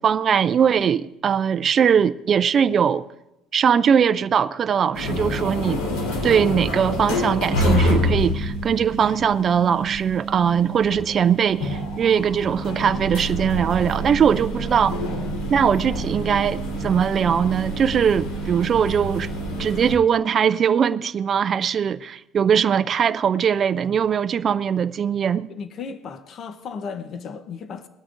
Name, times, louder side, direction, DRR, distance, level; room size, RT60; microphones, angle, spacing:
voice 1, 0.0-3.0 3.5-5.8 6.2-15.0 15.5-19.3 19.6-25.5, right 7 dB, 25° right, 0.3 m, -20 dB
sound 1, 4.9-20.0, equal, 90° left, 3.7 m, -27 dB
sound 2, 12.8-15.7, right 4 dB, 10° right, 1.5 m, -42 dB
voice 2, 25.5-27.9, left 5 dB, 35° left, 0.7 m, -35 dB
20.5 x 12.5 x 2.5 m
cardioid pair, 170°, 0 cm